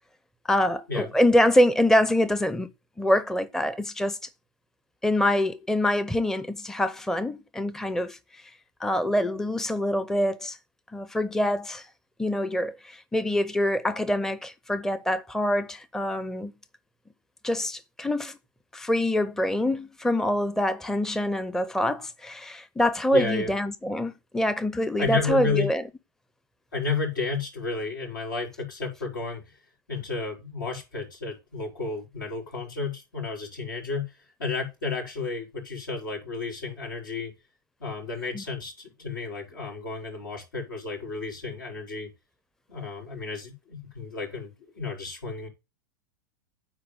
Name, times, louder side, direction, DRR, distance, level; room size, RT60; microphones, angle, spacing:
voice 1, 0.5-2.7 3.0-4.2 5.0-8.4 8.8-10.6 10.9-11.9 12.2-16.5 17.4-18.4 18.7-25.8 38.3-38.4, left 1 dB, 5° left, 0.7 m, -25 dB
voice 2, 23.1-23.5 25.0-25.7 26.7-29.4 29.9-34.1 34.4-37.3 37.8-42.1 42.7-45.5, left 4 dB, 80° left, 5.1 m, -32 dB
9.7 x 4.1 x 7.5 m
hypercardioid pair, 90°, 11 cm